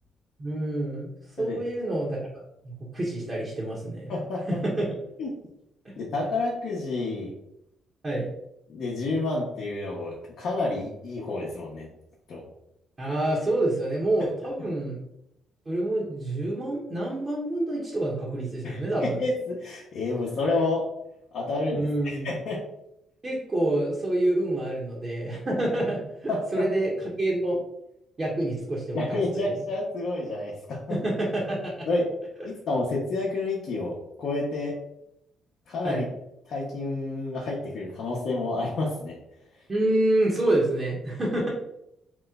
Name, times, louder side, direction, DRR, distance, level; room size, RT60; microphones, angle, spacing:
voice 1, 0.4-1.1 1.4-4.2 4.5-4.9 5.8-5.9 8.0-8.3 13.0-15.0 15.7-19.2 21.7-22.3 23.2-26.9 27.2-27.6 28.2-29.0 29.3-29.6 30.9-31.9 35.8-36.1 39.7-41.5, right 1 dB, 30° right, -4 dB, 0.8 m, -27 dB
voice 2, 4.1-4.6 5.2-5.3 6.0-7.3 8.7-11.9 12.3-12.4 18.6-20.9 21.3-22.6 26.3-26.7 28.9-31.0 31.9-32.1 32.4-34.7 35.7-36.0 36.5-39.2, left 2 dB, 70° left, -5 dB, 0.7 m, -29 dB
2.9 x 2.1 x 3.5 m, 0.82 s
cardioid pair, 90°, 0 cm